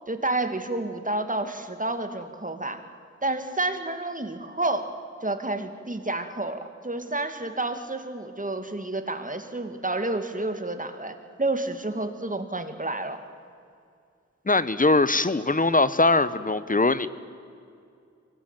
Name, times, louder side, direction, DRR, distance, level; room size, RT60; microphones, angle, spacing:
voice 1, 0.1-2.8 3.2-4.9 5.2-13.2, right 2 dB, 25° right, 7 dB, 2.4 m, -30 dB
voice 2, 14.5-17.1, left 2 dB, 30° left, 15 dB, 1.1 m, -21 dB
24.0 x 18.5 x 9.2 m, 2.4 s
cardioid pair, 55°, 29 cm